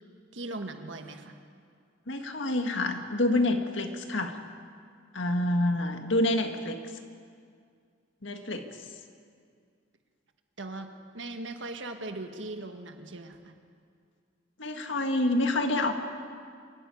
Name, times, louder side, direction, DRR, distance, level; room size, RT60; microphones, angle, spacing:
voice 1, 0.3-1.3 10.6-13.5, right 2 dB, 65° right, 5 dB, 1.8 m, -39 dB
voice 2, 2.1-4.4 5.1-6.8 8.2-8.6 14.6-15.9, left 1 dB, 65° left, 5 dB, 1.8 m, -27 dB
25.0 x 14.0 x 9.4 m, 2.2 s
head